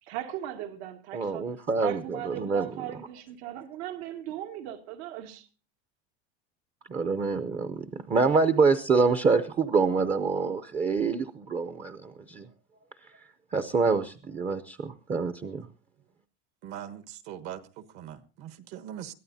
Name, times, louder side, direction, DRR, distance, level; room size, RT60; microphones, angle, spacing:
voice 1, 0.0-1.5 1.8-5.5, right 12 dB, 80° right, 2.4 m, -38 dB
voice 2, 1.1-2.7 6.9-12.5 13.5-15.7, right 4 dB, 20° right, 0.6 m, -26 dB
voice 3, 16.6-19.1, right 10 dB, 55° right, 1.4 m, -41 dB
22.0 x 14.5 x 2.7 m
cardioid pair, 160°, 32 cm